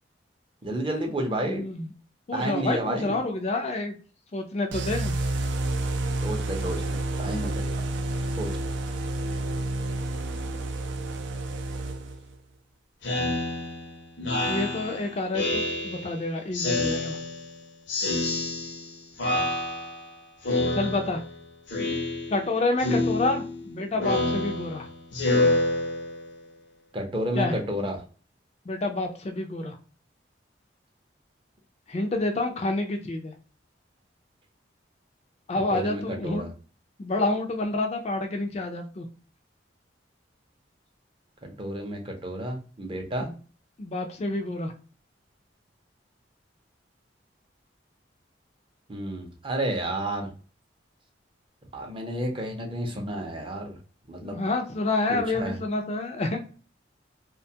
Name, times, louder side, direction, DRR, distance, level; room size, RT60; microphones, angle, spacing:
voice 1, 0.6-1.6 2.3-3.2 6.2-7.9 8.4-8.5 26.9-28.0 35.7-36.5 41.4-43.3 48.9-50.3 51.7-53.8 54.1-54.4 55.1-55.6, right 1 dB, 30° right, 2 dB, 0.5 m, -31 dB
voice 2, 1.4-1.9 2.3-4.0 4.3-5.1 14.5-17.2 20.7-21.2 22.3-24.9 27.4-27.6 28.7-29.8 31.9-33.3 35.5-36.4 37.0-39.1 43.2-43.3 43.8-44.7 54.2-56.4, left 2 dB, 35° left, 4 dB, 0.3 m, -28 dB
sound 1, 4.7-12.3, right 2 dB, 80° right, 0.4 m, -30 dB
Speech synthesizer, 13.0-16.2 16.5-17.6 17.9-18.9 19.2-20.1 20.4-21.3 21.7-22.5 22.8-26.3, left 2 dB, 80° left, 0.7 m, -28 dB
2.5 x 2.2 x 2.7 m, 0.38 s
head